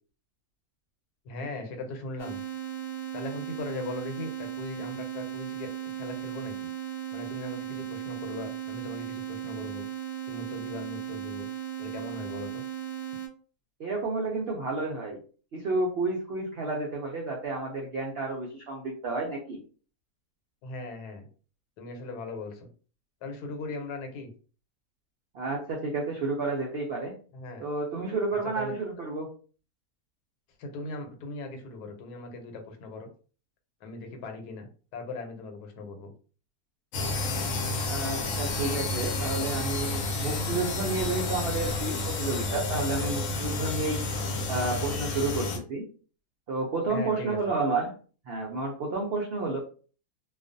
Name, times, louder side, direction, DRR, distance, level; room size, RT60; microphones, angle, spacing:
voice 1, 1.2-2.4 3.1-6.7 7.1-9.8 10.3-11.5 11.8-12.6 20.6-21.3 21.8-22.7 23.2-24.3 27.3-27.7 28.6-28.7 30.6-33.1 33.8-36.1 46.9-47.4, left 2 dB, 80° left, 5 dB, 1.2 m, -39 dB
sound 1, 2.2-13.3, right 11 dB, 15° right, 0.8 m, -36 dB
voice 2, 13.8-15.2 15.5-19.6 25.3-27.1 27.6-29.3 37.8-44.0 44.5-45.9 46.5-47.9 48.3-49.6, right 3 dB, 80° right, -1 dB, 0.5 m, -31 dB
sound 2, 36.9-45.6, left 2 dB, 65° left, 0.9 m, -30 dB
2.4 x 2.3 x 2.5 m, 0.39 s
omnidirectional pair, 1.7 m